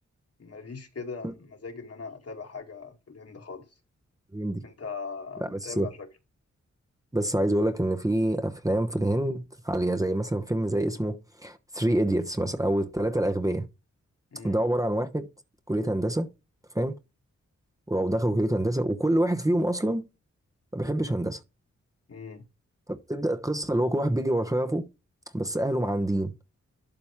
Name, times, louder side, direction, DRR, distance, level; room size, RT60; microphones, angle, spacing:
voice 1, 0.4-3.6 4.6-6.1 14.3-14.6 22.1-22.4, left 4 dB, 55° left, 2.2 m, -40 dB
voice 2, 4.3-4.6 5.5-5.9 7.1-13.7 14.4-15.3 15.7-16.3 16.7-16.9 17.9-20.0 20.7-21.4 22.9-24.9 25.3-26.3, right 1 dB, 10° right, 1.0 m, -26 dB
12.0 x 4.1 x 3.6 m
cardioid pair, 60°, 29 cm